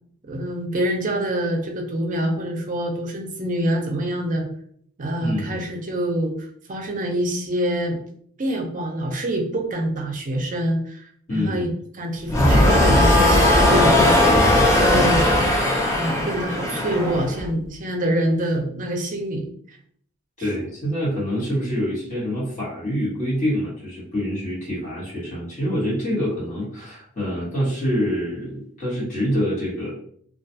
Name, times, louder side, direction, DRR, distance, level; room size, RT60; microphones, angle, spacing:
voice 1, 0.3-4.5 5.0-6.3 6.7-8.0 8.4-11.1 11.3-14.3 14.8-15.3 16.0-19.8, right 1 dB, 40° right, 2 dB, 0.5 m, -25 dB
voice 2, 5.2-5.6 11.3-11.7 20.4-29.9, equal, 35° left, -8 dB, 1.1 m, -26 dB
sound 1, 12.3-17.5, left 1 dB, 15° left, 0.6 m, -17 dB
2.3 x 2.3 x 2.6 m, 0.62 s
head